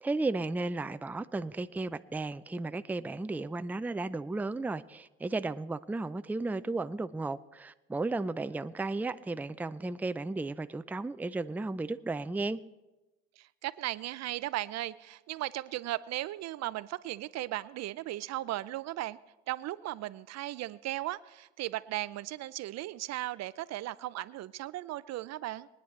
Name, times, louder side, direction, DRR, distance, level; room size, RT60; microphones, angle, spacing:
voice 1, 0.0-12.6, right 3 dB, 5° right, 0.5 m, -34 dB
voice 2, 13.4-19.2 19.5-25.7, right 15 dB, 55° right, 0.5 m, -36 dB
23.0 x 9.6 x 3.3 m
hypercardioid pair, 70°, 31 cm